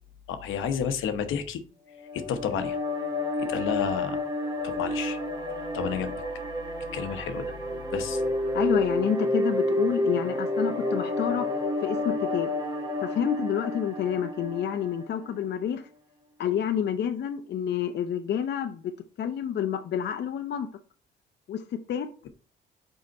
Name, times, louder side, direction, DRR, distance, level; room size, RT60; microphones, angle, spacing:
voice 1, 0.3-1.6 2.1-2.8 3.4-4.2 4.6-5.2 5.7-6.1 6.9-7.5 7.9-8.2, left 7 dB, 85° left, 1.0 m, -31 dB
sound 1, 2.0-15.3, left 1 dB, 20° right, 1.4 m, -30 dB
voice 2, 8.5-11.5 11.8-12.5 13.0-15.9 16.4-18.9 19.2-20.7 21.5-22.1, left 9 dB, 60° left, 0.6 m, -29 dB
5.3 x 4.8 x 4.0 m
cardioid pair, 90°, 20 cm